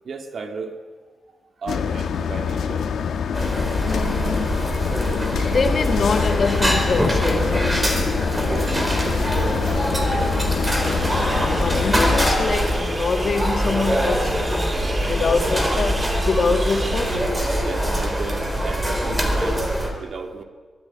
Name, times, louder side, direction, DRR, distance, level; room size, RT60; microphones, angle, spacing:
voice 1, 0.0-0.8 1.6-2.9 8.5-10.3 11.2-11.6 14.9-15.0 16.5-16.6 17.6-20.4, right 4 dB, 55° right, 2.5 m, -35 dB
sound 1, 1.7-12.3, left 7 dB, 80° left, 1.7 m, -25 dB
sound 2, 3.3-19.9, equal, 10° right, 4.2 m, -23 dB
voice 2, 3.8-4.5 5.4-7.9 11.4-14.4 15.0-17.3, left 4 dB, 45° left, 2.2 m, -25 dB
sound 3, 10.6-17.2, right 2 dB, 30° right, 2.1 m, -36 dB
24.0 x 20.5 x 9.0 m
wide cardioid pair, 140°, 0 cm